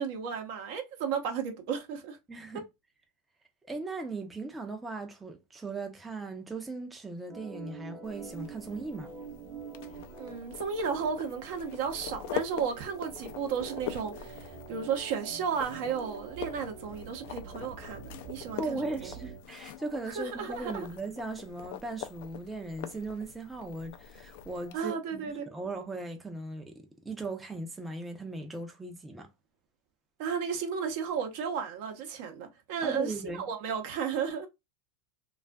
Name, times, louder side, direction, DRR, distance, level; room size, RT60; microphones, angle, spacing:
voice 1, 0.0-2.2 2.5-2.6 10.2-19.1 20.2-20.9 24.7-25.5 30.2-34.5, right 6 dB, 65° right, 0.7 m, -34 dB
voice 2, 2.3-2.6 3.6-9.1 18.6-29.3 32.8-33.4, right 2 dB, 10° right, 0.5 m, -38 dB
Organ, 7.3-19.4, right 5 dB, 30° right, 0.9 m, -46 dB
sound 1, 8.0-24.8, left 10 dB, 65° left, 0.3 m, -44 dB
2.4 x 2.4 x 2.2 m
supercardioid pair, 115°, 0 cm